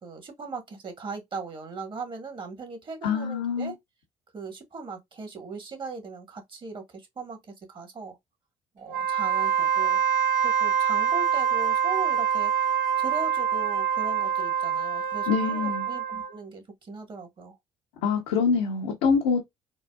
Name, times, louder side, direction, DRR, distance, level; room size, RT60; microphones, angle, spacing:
voice 1, 0.0-3.7 4.3-8.2 8.7-10.0 10.4-12.5 13.0-17.6, right 4 dB, 40° right, 1.5 m, -39 dB
voice 2, 3.0-3.7 15.3-15.9 18.0-19.4, left 5 dB, 90° left, 0.9 m, -25 dB
Wind instrument woodwind instrument, 8.9-16.3, right 8 dB, 90° right, 1.0 m, -25 dB
3.9 x 2.2 x 2.3 m
supercardioid pair, 70°, 13 cm